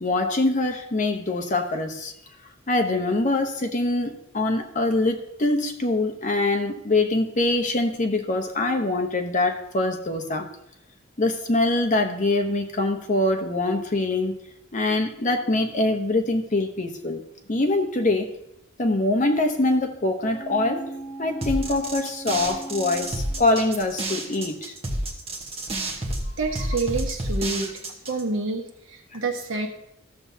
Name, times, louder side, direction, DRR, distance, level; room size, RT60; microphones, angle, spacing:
voice 1, 0.0-2.1 2.7-10.5 11.2-14.4 14.7-17.2 17.5-18.3 18.8-20.9 21.2-24.7, left 2 dB, 40° left, 0.9 m, -24 dB
sound 1, 20.3-24.0 24.4-24.5, right 2 dB, ahead, 2.0 m, -39 dB
sound 2, 21.4-28.2, right 1 dB, 30° right, 1.1 m, -30 dB
voice 2, 26.4-27.7 28.1-29.7, right 3 dB, 70° right, 1.2 m, -28 dB
13.5 x 7.0 x 2.8 m
head